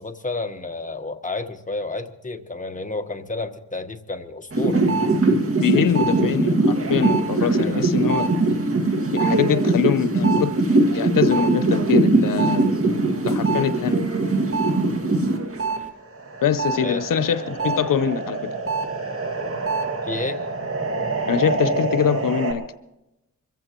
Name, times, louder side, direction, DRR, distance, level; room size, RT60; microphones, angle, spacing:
voice 1, 0.0-4.9 7.6-7.9 16.8-17.1 20.0-20.4, left 3 dB, 25° left, 6 dB, 1.2 m, -31 dB
sound 1, 4.5-15.8 16.2-22.5, right 2 dB, 45° right, 1.9 m, -22 dB
voice 2, 5.6-8.3 9.1-12.7 13.2-14.0 16.4-18.4 21.3-22.6, left 8 dB, 90° left, 12 dB, 0.7 m, -23 dB
24.5 x 15.0 x 3.0 m, 0.89 s
wide cardioid pair, 75°, 32 cm